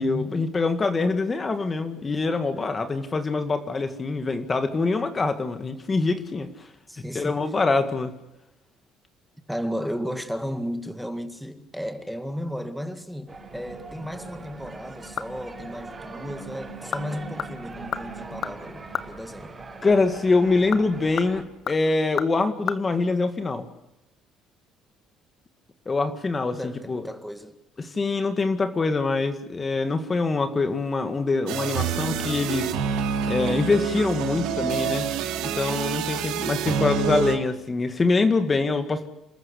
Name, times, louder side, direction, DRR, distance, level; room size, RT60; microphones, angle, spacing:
voice 1, 0.0-6.5 7.1-8.1 19.8-23.7 25.9-27.0 27.8-32.7 33.3-35.1 35.4-39.1, left 3 dB, 25° left, 1.9 m, -24 dB
voice 2, 6.9-7.4 9.5-19.6 26.5-27.6, equal, ahead, 1.9 m, -34 dB
sound 1, 13.3-21.4, right 3 dB, 20° right, 7.6 m, -40 dB
sound 2, 14.7-15.6 15.9-16.0 16.6-17.1 17.4-19.2 20.4-22.8 23.1-23.2, left 8 dB, 45° left, 1.3 m, -33 dB
sound 3, 31.5-37.4, right 7 dB, 85° right, 2.8 m, -27 dB
28.0 x 14.0 x 8.1 m
cardioid pair, 115°, 0 cm